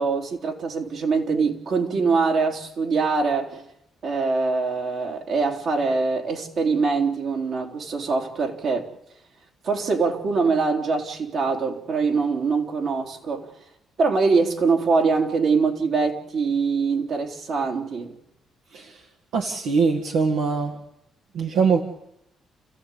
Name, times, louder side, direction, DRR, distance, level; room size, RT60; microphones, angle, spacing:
voice 1, 0.0-3.6 4.0-8.9 9.6-13.5 14.0-18.1, right 4 dB, 65° right, 3.7 m, -23 dB
voice 2, 19.3-20.7 21.3-21.8, right 5 dB, 85° right, 1.9 m, -22 dB
29.5 x 15.5 x 8.5 m
cardioid pair, 90°, 0 cm